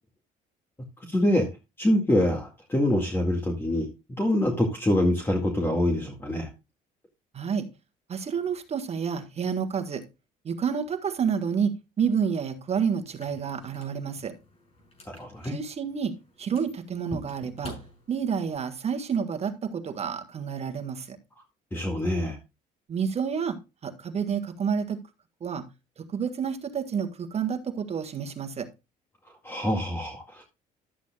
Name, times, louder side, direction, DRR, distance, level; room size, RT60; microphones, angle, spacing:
voice 1, 1.1-1.5 1.8-3.9 4.2-6.5 15.1-15.5 21.7-22.4 29.4-30.4, left 1 dB, 15° left, 2 dB, 1.9 m, -25 dB
voice 2, 7.3-7.7 8.1-10.0 10.4-14.3 15.5-16.1 16.4-17.7 18.1-21.2 22.9-23.6 23.8-25.0 25.4-25.6 26.1-28.7, right 7 dB, 40° right, 6 dB, 1.6 m, -29 dB
sound 1, 13.0-18.6, equal, 35° left, 6.2 m, -46 dB
13.0 x 8.3 x 2.3 m, 0.26 s
cardioid pair, 110°, 17 cm